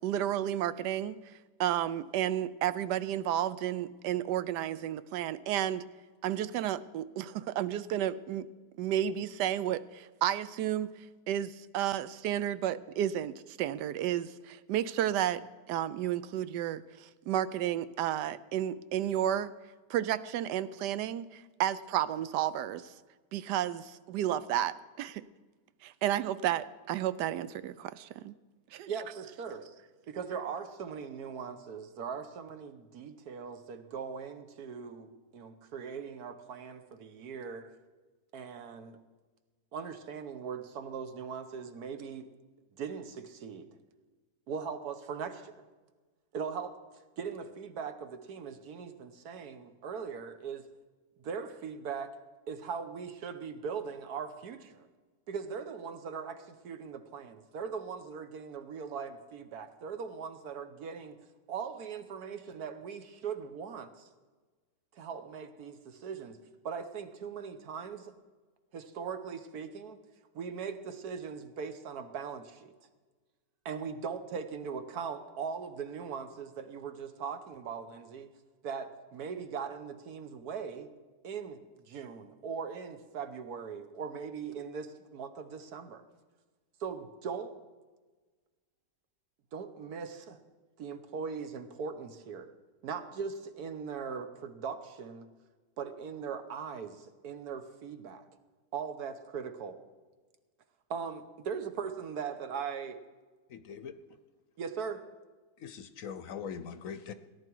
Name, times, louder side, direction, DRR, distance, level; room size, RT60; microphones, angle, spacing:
voice 1, 0.0-1.2 1.6-5.8 6.2-8.5 8.8-10.9 11.3-19.5 19.9-22.9 23.3-25.3 25.8-28.3 28.7-28.9, right 11 dB, 90° right, 15 dB, 1.2 m, -32 dB
voice 2, 28.9-29.8 30.1-37.7 38.3-39.0 39.7-42.3 42.8-43.7 44.5-45.6 46.3-46.7 47.2-50.7 51.2-52.1 52.5-54.9 55.3-61.2 61.5-64.1 64.9-66.4 66.6-68.1 68.7-70.0 70.3-72.7 73.6-78.3 78.6-80.9 81.2-86.0 86.8-87.5 89.5-90.4 90.8-92.5 92.8-95.3 95.8-98.2 98.7-99.8 100.9-103.0 103.7-103.8 104.6-105.0, right 6 dB, 70° right, 9 dB, 1.4 m, -40 dB
voice 3, 103.5-104.0 105.6-107.1, left 7 dB, 65° left, 11 dB, 0.9 m, -42 dB
17.5 x 10.5 x 4.6 m, 1.3 s
omnidirectional pair, 1.8 m